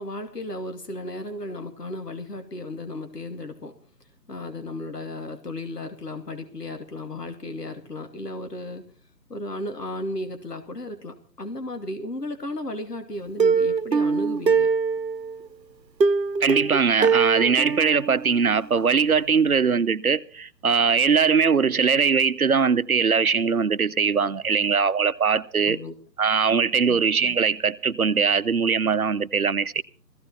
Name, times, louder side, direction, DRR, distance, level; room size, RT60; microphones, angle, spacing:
voice 1, 0.0-3.7 4.3-8.8 9.3-14.7 25.7-25.9 26.8-27.0, left 1 dB, 70° left, 2.7 m, -34 dB
Plucked string instrument, 13.4-15.4 16.0-18.8 19.1-19.2 19.6-19.7, right 5 dB, 85° right, 1.0 m, -23 dB
voice 2, 16.4-25.8 26.2-29.8, right 5 dB, 60° right, 0.9 m, -21 dB
17.5 x 15.5 x 4.3 m
figure-of-eight pair, 155°, 50 cm